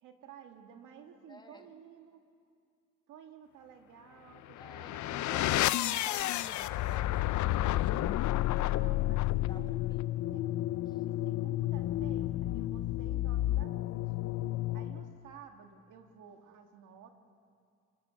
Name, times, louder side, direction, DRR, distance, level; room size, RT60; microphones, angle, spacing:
voice 1, 0.0-2.2 3.1-6.0 8.5-9.9 10.3-10.5 11.0-14.0 14.7-17.1, right 8 dB, 85° right, 4 dB, 2.3 m, -53 dB
voice 2, 1.3-1.7 4.6-7.9 9.1-10.0 10.9-11.0, left 2 dB, 15° left, 5 dB, 1.9 m, -53 dB
sound 1, 4.5-15.2, left 15 dB, 70° left, 0.6 m, -31 dB
26.5 x 21.0 x 7.2 m, 2.3 s
cardioid pair, 90°, 30 cm